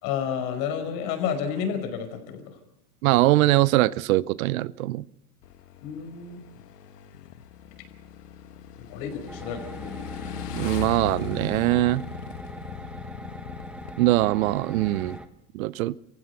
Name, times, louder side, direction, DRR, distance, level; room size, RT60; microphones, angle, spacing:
voice 1, 0.0-2.4 5.8-6.4 8.8-10.0, left 7 dB, 50° left, 5.2 m, -30 dB
voice 2, 3.0-5.0 10.5-12.0 14.0-15.2 15.5-15.9, right 17 dB, 65° right, 0.7 m, -22 dB
Motorcycle / Engine, 5.4-15.2, left 9 dB, 85° left, 1.6 m, -39 dB
sound 1, 9.3-15.3, right 1 dB, ahead, 1.1 m, -41 dB
26.0 x 15.5 x 6.9 m
supercardioid pair, 130°, 46 cm